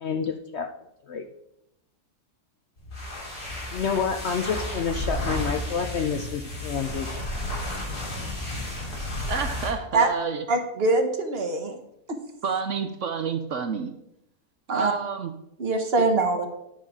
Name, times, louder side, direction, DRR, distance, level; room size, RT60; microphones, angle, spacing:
voice 1, 0.0-0.7 1.1-1.3 3.7-7.1, left 6 dB, 65° left, 5 dB, 0.7 m, -28 dB
sound 1, 2.8-9.8, left 1 dB, 80° left, 3.6 m, -32 dB
voice 2, 9.3-10.4 12.4-13.9 14.7-15.3, right 5 dB, 65° right, 7 dB, 0.8 m, -28 dB
voice 3, 10.5-11.8 12.1-12.2 14.7-14.9 15.6-16.5, right 3 dB, 45° right, 5 dB, 1.0 m, -23 dB
9.7 x 5.6 x 4.8 m, 0.82 s
omnidirectional pair, 1.6 m